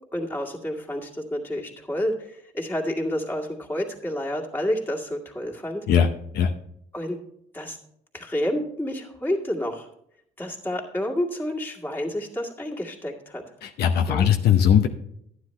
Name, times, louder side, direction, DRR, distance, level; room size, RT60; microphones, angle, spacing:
voice 1, 0.1-5.9 6.9-7.2 7.5-7.8 8.1-9.9 10.4-13.4 14.1-14.3, left 1 dB, 10° left, -2 dB, 2.0 m, -29 dB
voice 2, 13.6-14.9, left 8 dB, 70° left, 4 dB, 0.8 m, -19 dB
12.0 x 9.7 x 3.2 m, 0.71 s
cardioid pair, 110°, 17 cm